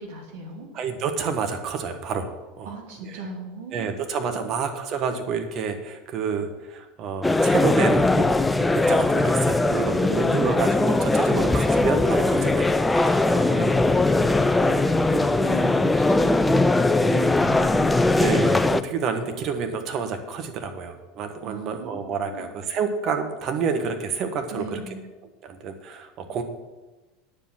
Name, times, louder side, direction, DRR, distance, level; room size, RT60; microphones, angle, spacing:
voice 1, 0.0-0.7 2.6-3.9 4.3-4.6 10.0-10.6 13.4-18.0 21.4-22.5 24.5-25.0, right 3 dB, 70° right, -1 dB, 2.8 m, -38 dB
voice 2, 0.7-2.8 3.0-3.2 3.7-13.7 18.0-24.8 25.4-26.4, right 5 dB, 45° right, 7 dB, 1.4 m, -29 dB
sound 1, 7.2-18.8, left 2 dB, 10° left, 0.5 m, -20 dB
9.5 x 7.4 x 6.1 m, 1.2 s
hypercardioid pair, 80°, 0 cm